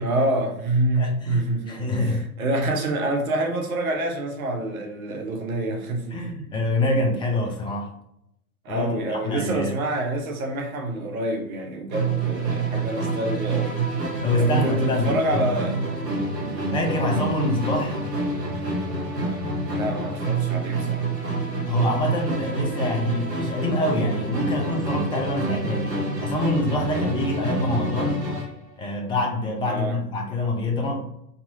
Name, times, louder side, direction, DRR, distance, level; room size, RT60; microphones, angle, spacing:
voice 1, 0.0-6.3 8.6-13.8 14.4-15.8 16.4-16.7 19.7-21.1 29.7-30.0, right 1 dB, 60° right, 3 dB, 1.3 m, -27 dB
voice 2, 1.0-2.3 6.1-8.0 8.7-9.7 14.2-15.6 16.7-18.0 21.7-28.2 28.8-31.0, left 1 dB, 10° left, 1 dB, 0.6 m, -26 dB
Musical instrument, 11.9-28.6, right 3 dB, 80° right, 1.4 m, -27 dB
4.2 x 4.1 x 2.7 m, 0.77 s
figure-of-eight pair, 105°, 48 cm